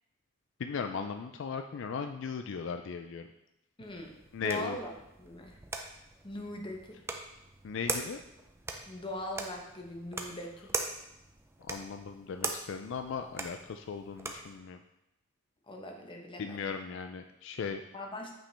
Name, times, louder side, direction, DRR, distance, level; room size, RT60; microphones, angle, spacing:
voice 1, 0.6-3.3 4.3-4.8 7.6-8.2 11.6-14.8 16.4-17.8, left 5 dB, 65° left, 6 dB, 0.4 m, -37 dB
voice 2, 3.8-4.1 4.4-5.6 6.2-7.0 8.9-10.7 15.7-16.6 17.9-18.3, left 1 dB, 25° left, 2 dB, 1.0 m, -40 dB
sound 1, 3.8-14.6, right 3 dB, 10° right, 0.5 m, -41 dB
8.7 x 5.1 x 3.3 m, 0.88 s
head